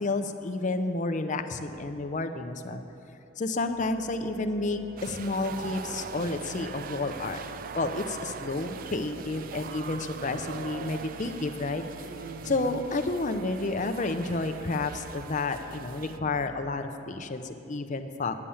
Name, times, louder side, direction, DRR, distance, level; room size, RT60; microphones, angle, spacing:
voice 1, 0.0-2.8 3.4-7.4 7.7-11.8 12.4-18.4, left 3 dB, 40° left, 8 dB, 0.6 m, -30 dB
sound 1, 3.6-16.6, right 2 dB, 80° right, 0.7 m, -48 dB
sound 2, 5.0-16.2, right 6 dB, 45° right, 0.3 m, -41 dB
9.8 x 7.1 x 8.8 m, 2.8 s
head